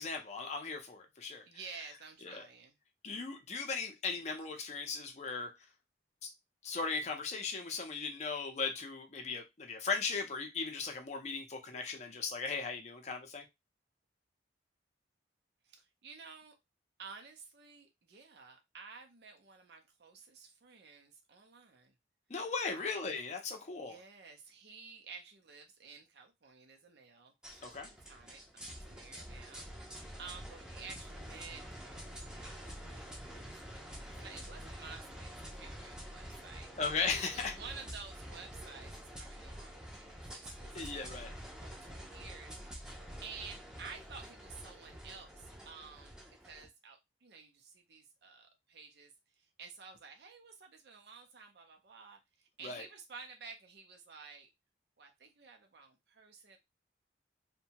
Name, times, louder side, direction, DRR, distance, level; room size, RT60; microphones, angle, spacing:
voice 1, 0.0-1.4 2.2-2.4 3.0-5.5 6.2-6.3 6.6-13.4 22.3-24.0 27.6-27.9 36.8-37.5 40.7-41.3 52.6-52.9, left 4 dB, 40° left, 0.5 m, -37 dB
voice 2, 1.5-2.8 15.6-16.5 17.0-21.9 22.7-22.9 23.8-27.7 28.0-31.8 32.1-36.7 37.2-40.7 41.1-41.3 41.6-42.9 43.2-54.5 55.0-56.6, right 5 dB, 60° right, 0.5 m, -52 dB
sound 1, 27.4-46.7, equal, 5° right, 0.6 m, -48 dB
2.7 x 2.2 x 2.8 m
head